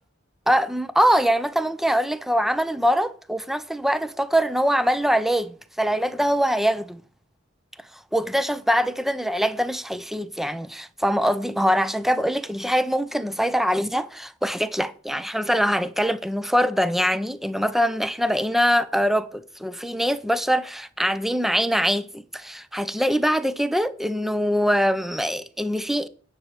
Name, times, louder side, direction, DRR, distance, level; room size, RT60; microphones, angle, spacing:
voice 1, 0.5-7.0 8.1-26.1, equal, ahead, 0.5 m, -23 dB
9.9 x 5.5 x 7.5 m
head